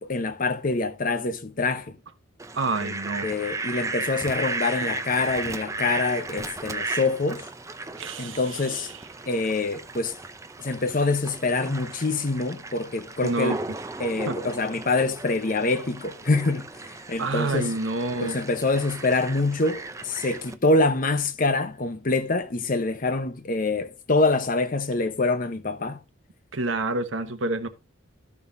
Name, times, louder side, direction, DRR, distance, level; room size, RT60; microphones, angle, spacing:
voice 1, 0.0-1.9 2.8-2.9 3.2-7.5 8.2-8.9 9.3-10.1 10.6-13.6 14.0-16.7 17.1-17.7 18.2-26.0, left 3 dB, 45° left, 0.8 m, -25 dB
Fowl, 2.4-20.5, right 3 dB, 15° right, 0.6 m, -35 dB
voice 2, 2.5-3.3 8.0-8.9 13.2-13.6 14.3-14.4 17.2-18.4 26.5-27.7, right 2 dB, 75° right, 1.1 m, -28 dB
14.5 x 5.5 x 2.6 m
head